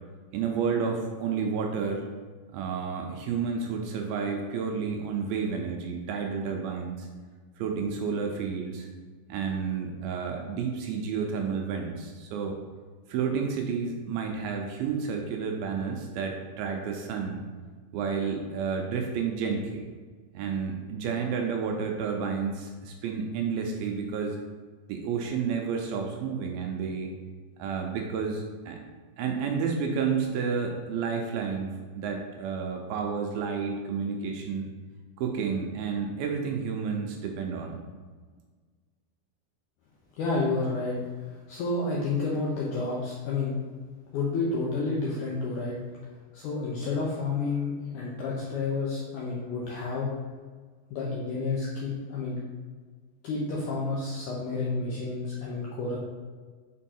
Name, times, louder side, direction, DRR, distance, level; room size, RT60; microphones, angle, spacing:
voice 1, 0.3-2.1 2.5-7.1 7.6-8.9 9.3-12.6 13.1-17.4 17.9-19.9 20.3-24.4 24.9-27.1 27.6-28.8 29.2-34.7 35.2-37.8, right 6 dB, 80° right, 2 dB, 2.4 m, -30 dB
voice 2, 40.2-43.6 44.1-45.8 46.3-50.1 50.9-52.4 53.2-56.0, left 3 dB, 80° left, -4 dB, 1.8 m, -30 dB
6.0 x 4.5 x 4.4 m, 1.5 s
omnidirectional pair, 4.5 m